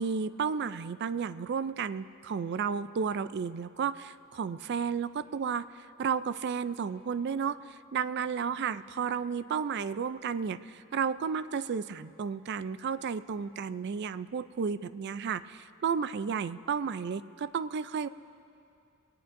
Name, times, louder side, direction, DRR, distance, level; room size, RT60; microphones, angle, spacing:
voice 1, 0.0-18.1, right 6 dB, 50° right, 15 dB, 0.3 m, -32 dB
23.5 x 18.0 x 2.6 m, 2.6 s
head